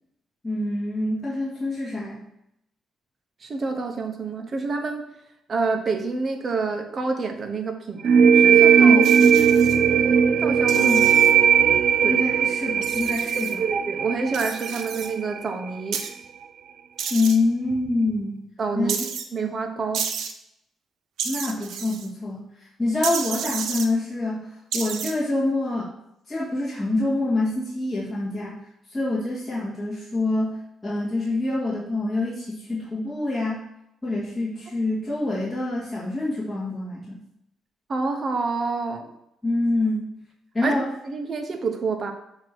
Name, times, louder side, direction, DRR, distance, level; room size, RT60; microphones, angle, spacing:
voice 1, 0.4-2.2 8.9-9.3 10.8-11.1 12.0-13.6 17.1-18.4 18.8-19.1 21.2-25.9 26.3-28.6 28.9-33.6 34.0-37.2 39.4-40.1 40.5-40.9, left 2 dB, 15° left, -8 dB, 2.1 m, -26 dB
voice 2, 3.4-5.1 5.5-9.1 10.4-10.9 12.0-12.2 13.6-16.0 18.6-19.0 19.3-20.0 37.9-39.1 40.6-40.8 41.0-42.1, right 4 dB, 45° right, 4 dB, 1.1 m, -28 dB
sound 1, 8.0-15.5, right 7 dB, 60° right, 0.3 m, -18 dB
sound 2, 9.0-9.8 10.7-11.3 12.8-13.5 14.3-15.1 15.9-16.1 17.0-17.4 18.9-19.2 19.9-20.3 21.2-22.1 23.0-23.9 24.7-25.1, right 7 dB, 75° right, 0.7 m, -31 dB
7.8 x 3.1 x 6.2 m, 0.80 s
cardioid pair, 90°, 0 cm